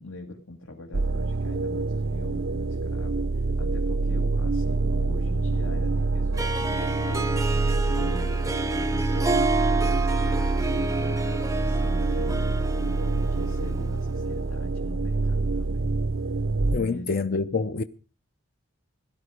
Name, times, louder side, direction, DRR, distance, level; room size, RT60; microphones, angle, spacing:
voice 1, 0.0-7.4 7.8-10.0 10.4-12.5 12.8-15.9 16.7-17.2, left 2 dB, 75° left, 2.2 m, -42 dB
sound 1, 0.9-16.8, right 3 dB, 70° right, 0.6 m, -26 dB
Harp, 6.3-14.1, right 2 dB, 15° right, 0.7 m, -30 dB
voice 2, 16.7-17.8, left 4 dB, 45° left, 0.6 m, -26 dB
17.0 x 12.0 x 5.1 m
head